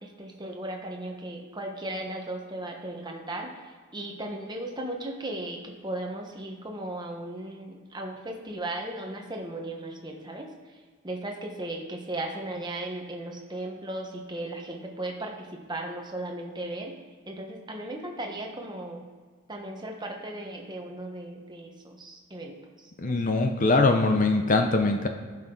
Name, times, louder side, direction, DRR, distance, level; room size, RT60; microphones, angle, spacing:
voice 1, 0.0-3.5 3.9-10.5 11.0-16.9 17.3-19.0 19.5-23.2, right 1 dB, 20° right, 2 dB, 1.2 m, -36 dB
voice 2, 23.0-25.1, left 3 dB, 35° left, 6 dB, 0.6 m, -22 dB
15.0 x 5.9 x 3.9 m, 1.5 s
head